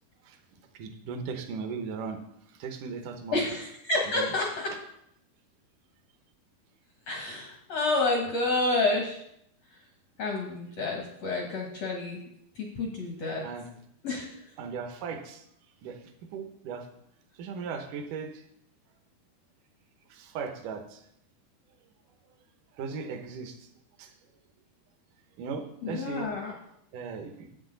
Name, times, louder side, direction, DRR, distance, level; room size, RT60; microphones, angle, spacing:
voice 1, 0.8-2.2 2.6-3.5 4.2-4.3 13.4-13.7 14.6-15.4 15.8-16.0 16.3-16.9 17.4-18.3 20.1-21.0 22.8-23.6 24.0-24.1 25.4-26.3 26.9-27.5, right 5 dB, 70° right, 7 dB, 2.1 m, -37 dB
voice 2, 3.3-4.7 7.1-9.2 9.7-9.8 10.2-12.2 12.5-13.5 14.0-14.4 25.8-26.5, left 2 dB, 70° left, 0 dB, 1.5 m, -29 dB
10.5 x 8.1 x 3.9 m, 0.74 s
omnidirectional pair, 4.6 m